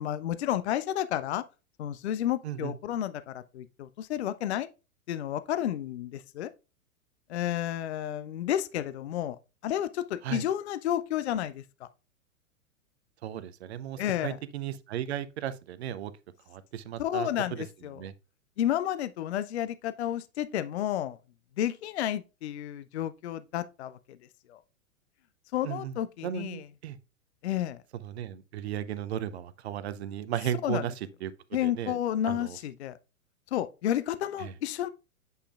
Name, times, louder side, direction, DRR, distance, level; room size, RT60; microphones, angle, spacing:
voice 1, 0.0-1.4 1.8-4.7 5.1-6.5 7.3-9.4 9.6-11.9 14.0-14.4 17.0-18.0 18.6-21.2 21.6-24.2 24.5-24.6 25.5-26.7 27.4-27.8 30.6-30.9 31.5-33.0 33.5-34.9, left 11 dB, 55° left, 0.5 m, -31 dB
voice 2, 13.2-16.1 16.5-17.3 18.0-18.1 25.6-26.0 26.2-27.0 28.0-30.9 31.2-31.3 31.6-32.0 32.3-32.6 34.4-34.5, right 11 dB, 50° right, 0.6 m, -35 dB
8.2 x 5.4 x 2.3 m
figure-of-eight pair, 100°, 42 cm